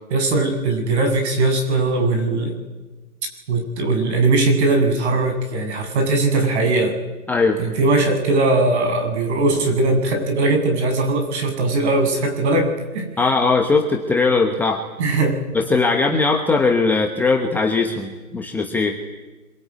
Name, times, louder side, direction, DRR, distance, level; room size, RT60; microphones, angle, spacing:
voice 1, 0.1-2.6 3.5-7.0 7.6-13.1 15.0-15.4, right 2 dB, 45° right, 7 dB, 7.8 m, -19 dB
voice 2, 7.3-7.6 13.2-14.9 15.5-19.0, left 3 dB, 5° left, 3 dB, 1.0 m, -19 dB
25.5 x 23.0 x 9.6 m, 1.2 s
hypercardioid pair, 150°, 46 cm